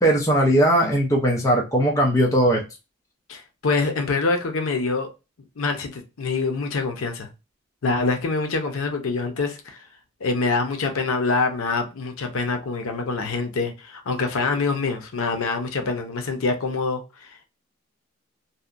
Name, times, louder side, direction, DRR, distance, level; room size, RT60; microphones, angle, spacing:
voice 1, 0.0-2.6, equal, 15° left, 0.5 m, -19 dB
voice 2, 3.3-5.1 5.6-7.3 7.8-9.8 10.2-17.4, left 3 dB, 85° left, 0.6 m, -25 dB
2.7 x 2.1 x 2.4 m
head